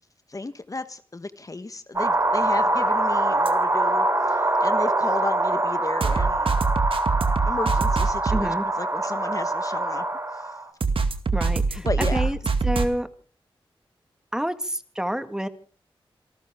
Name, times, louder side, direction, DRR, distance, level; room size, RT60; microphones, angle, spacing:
voice 1, 0.3-6.6 7.5-10.0 11.8-12.3, left 3 dB, 35° left, 11 dB, 1.3 m, -33 dB
sound 1, 2.0-10.7, right 2 dB, 30° right, 3.8 m, -24 dB
sound 2, 3.5-3.6 6.0-8.4 10.8-12.9, right 4 dB, 70° right, 2.0 m, -23 dB
voice 2, 8.3-8.7 11.3-11.9 12.1-12.4 12.6-13.1 14.3-15.5, equal, 5° right, 10 dB, 1.7 m, -28 dB
27.5 x 13.5 x 3.6 m, 0.40 s
cardioid pair, 50°, 10 cm